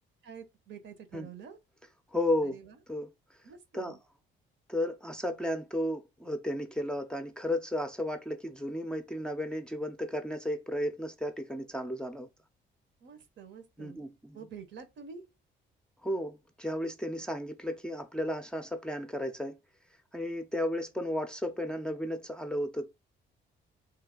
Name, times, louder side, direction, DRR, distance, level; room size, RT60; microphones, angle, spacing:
voice 1, 0.2-1.6 2.4-2.8 3.4-4.0 13.0-15.3, right 6 dB, 70° right, 0.9 m, -48 dB
voice 2, 2.1-2.6 2.9-3.1 3.7-4.0 4.7-12.3 13.8-14.4 16.0-19.6 20.1-22.9, left 1 dB, 5° left, 0.5 m, -33 dB
3.2 x 2.7 x 3.8 m
cardioid pair, 90°, 20 cm